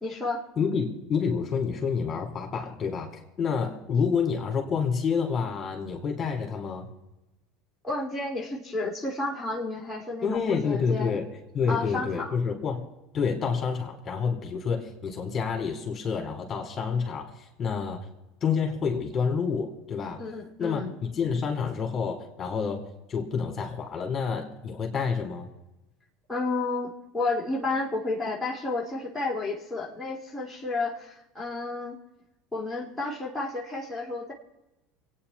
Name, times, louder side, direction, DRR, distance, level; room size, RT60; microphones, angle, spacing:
voice 1, 0.0-0.4 7.8-11.2 11.7-12.4 20.2-20.9 26.3-32.0 32.5-34.3, left 3 dB, 5° left, -5 dB, 3.4 m, -31 dB
voice 2, 0.6-6.9 10.2-11.3 11.5-12.8 13.1-17.3 17.6-18.0 18.4-20.2 20.6-22.8 23.1-25.5, left 6 dB, 35° left, 3 dB, 4.2 m, -28 dB
27.0 x 9.6 x 4.4 m, 0.96 s
hypercardioid pair, 90°, 0 cm